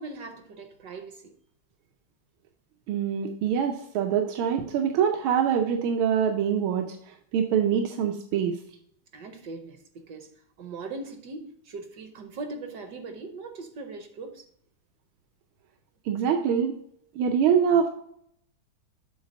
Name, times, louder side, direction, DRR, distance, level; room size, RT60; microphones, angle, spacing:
voice 1, 0.0-1.3 9.1-10.3 10.6-14.5, right 3 dB, 65° right, 1.1 m, -40 dB
voice 2, 2.9-7.0 7.3-8.6 16.0-16.7 17.2-17.9, right 8 dB, 85° right, 1.5 m, -24 dB
7.9 x 3.5 x 5.1 m
omnidirectional pair, 2.2 m